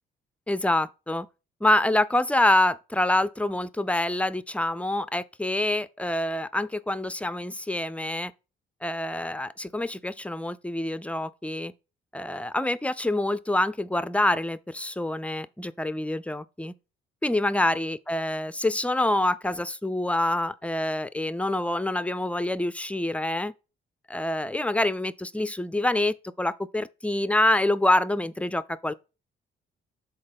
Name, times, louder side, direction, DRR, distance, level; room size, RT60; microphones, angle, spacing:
voice 1, 0.5-1.3 1.6-8.3 8.8-11.7 12.1-16.7 17.2-23.5 24.1-28.9, left 1 dB, 5° left, 0.4 m, -26 dB
6.6 x 4.2 x 5.3 m
cardioid pair, 90°, 20 cm